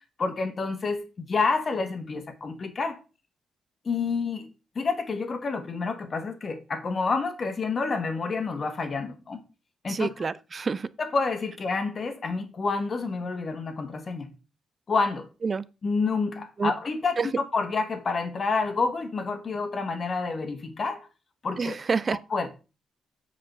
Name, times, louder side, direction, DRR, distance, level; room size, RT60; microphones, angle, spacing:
voice 1, 0.2-3.0 3.8-4.5 4.7-9.4 9.8-10.1 11.0-14.3 14.9-15.3 15.8-21.1 21.4-21.7 22.3-22.5, left 4 dB, 35° left, 1.5 m, -28 dB
voice 2, 9.9-10.9 15.4-15.6 16.6-16.7 17.2-17.3 21.6-22.2, right 5 dB, 30° right, 0.5 m, -27 dB
8.0 x 4.8 x 5.9 m
cardioid pair, 135°, 0 cm